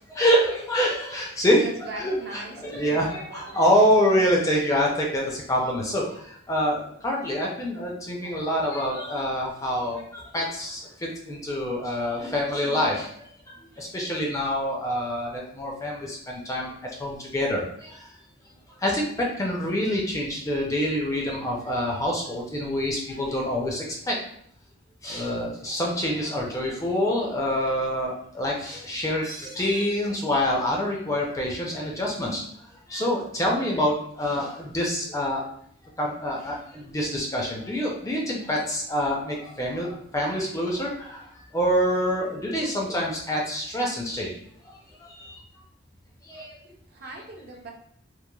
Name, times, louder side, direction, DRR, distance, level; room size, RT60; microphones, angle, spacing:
voice 1, 0.0-18.1 18.8-24.2 25.0-32.4 32.9-35.4 36.0-44.4 45.0-45.4 46.2-46.6, equal, 15° left, -2 dB, 0.4 m, -26 dB
voice 2, 1.6-3.5 46.9-47.7, right 2 dB, 50° right, 1 dB, 0.5 m, -39 dB
3.0 x 2.1 x 2.2 m, 0.65 s
head